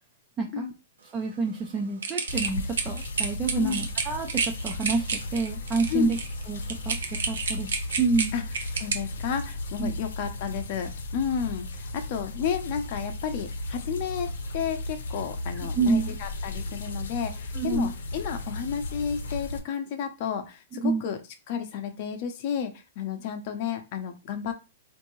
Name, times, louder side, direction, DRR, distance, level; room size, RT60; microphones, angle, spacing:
voice 1, 0.4-0.7 1.1-6.2 6.5-7.0 7.3-8.3 9.8-10.0 15.8-16.1 17.5-17.9 20.8-21.0, right 4 dB, 20° right, 1 dB, 0.5 m, -28 dB
sound 1, 2.0-8.9, right 5 dB, 80° right, 0.8 m, -30 dB
sound 2, 2.3-19.6, left 2 dB, 80° left, 0.7 m, -35 dB
voice 2, 8.8-21.2 21.5-24.5, left 8 dB, 45° left, 7 dB, 0.7 m, -32 dB
3.4 x 2.6 x 3.1 m, 0.29 s
hypercardioid pair, 150°, 0 cm